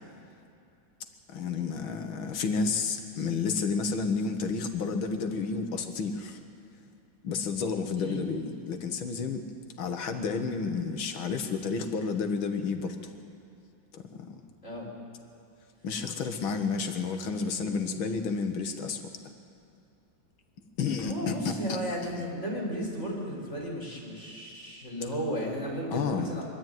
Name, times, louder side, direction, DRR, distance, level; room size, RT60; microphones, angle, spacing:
voice 1, 1.3-6.4 7.2-9.4 9.8-13.1 13.9-14.4 15.8-19.0 20.8-21.8 25.9-26.3, left 5 dB, 85° left, 6 dB, 2.1 m, -31 dB
voice 2, 21.0-26.4, equal, 35° left, -2 dB, 4.2 m, -34 dB
24.0 x 12.5 x 9.1 m, 2.5 s
omnidirectional pair, 2.2 m